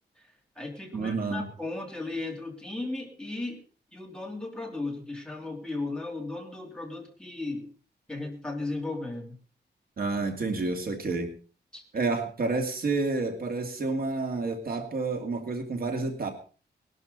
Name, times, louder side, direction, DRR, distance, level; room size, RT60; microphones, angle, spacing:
voice 1, 0.2-3.6 3.9-7.7 8.1-9.4 11.7-11.8, left 2 dB, 5° left, 0 dB, 3.2 m, -36 dB
voice 2, 0.9-1.5 10.0-11.3 11.9-16.3, right 3 dB, 55° right, 4 dB, 2.5 m, -29 dB
20.0 x 12.0 x 4.1 m, 0.39 s
wide cardioid pair, 155°, 18 cm